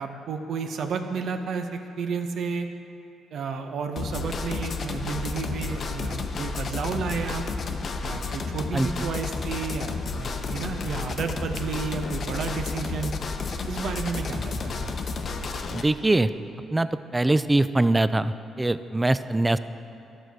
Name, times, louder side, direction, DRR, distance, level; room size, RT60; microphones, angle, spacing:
voice 1, 0.0-2.7 3.3-7.5 8.0-13.1 13.7-14.9, right 5 dB, 65° right, 6 dB, 0.7 m, -31 dB
sound 1, 4.0-15.8, left 4 dB, 50° left, 0.7 m, -31 dB
voice 2, 8.7-9.1 15.7-16.3 16.7-19.6, right 2 dB, 15° right, 14 dB, 0.3 m, -23 dB
12.0 x 6.4 x 4.7 m, 2.7 s
cardioid pair, 90°, 0 cm